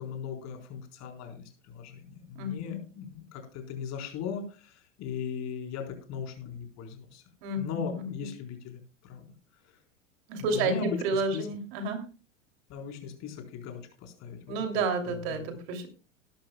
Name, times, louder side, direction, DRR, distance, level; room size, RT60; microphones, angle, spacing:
voice 1, 0.0-7.2 7.6-9.3 10.4-11.5 12.7-15.5, left 7 dB, 45° left, 3 dB, 4.1 m, -38 dB
voice 2, 2.4-2.8 7.4-8.1 10.3-12.0 14.5-15.9, right 3 dB, 55° right, 6 dB, 2.9 m, -30 dB
18.0 x 12.0 x 2.3 m, 0.34 s
hypercardioid pair, 90°, 38 cm